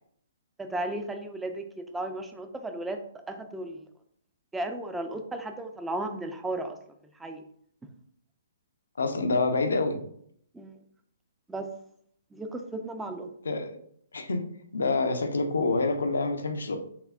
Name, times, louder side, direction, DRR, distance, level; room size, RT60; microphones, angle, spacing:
voice 1, 0.6-3.0 3.3-3.8 4.5-6.8 7.2-7.4 10.5-10.8 11.5-11.7 12.3-13.3, right 2 dB, 10° right, 6 dB, 0.4 m, -34 dB
voice 2, 9.0-10.0 13.4-13.8 14.1-14.5 14.7-16.8, left 3 dB, 85° left, 6 dB, 0.6 m, -27 dB
5.7 x 2.0 x 2.4 m, 0.65 s
hypercardioid pair, 140°, 0 cm